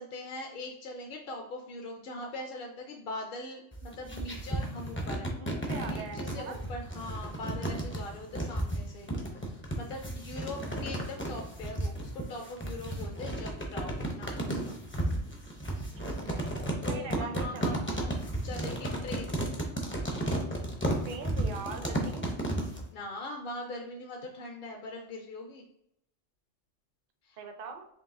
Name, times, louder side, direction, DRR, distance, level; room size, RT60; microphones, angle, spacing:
voice 1, 0.0-5.3 5.9-14.8 16.8-18.1 18.4-19.5 22.9-25.6 27.2-27.4, left 2 dB, 60° left, 2 dB, 0.7 m, -41 dB
sound 1, 3.7-22.8, right 1 dB, 20° left, 0.4 m, -33 dB
voice 2, 5.4-6.6 16.0-16.4 16.9-18.0 21.0-22.3 27.4-27.9, right 5 dB, 55° right, 5 dB, 0.7 m, -42 dB
4.6 x 3.1 x 2.5 m, 0.79 s
omnidirectional pair, 1.2 m